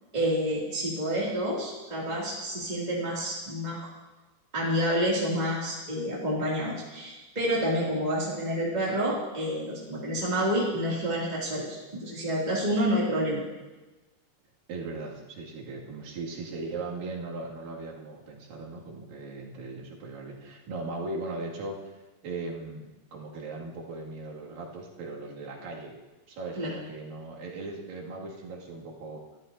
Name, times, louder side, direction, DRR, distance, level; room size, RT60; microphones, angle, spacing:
voice 1, 0.1-3.9 4.5-11.7 12.0-13.4 26.6-26.7, equal, 15° right, -6 dB, 1.6 m, -28 dB
voice 2, 14.7-22.0 22.2-26.0 26.3-29.2, right 3 dB, 60° right, -3 dB, 3.8 m, -38 dB
24.0 x 13.0 x 2.7 m, 1.1 s
omnidirectional pair, 4.6 m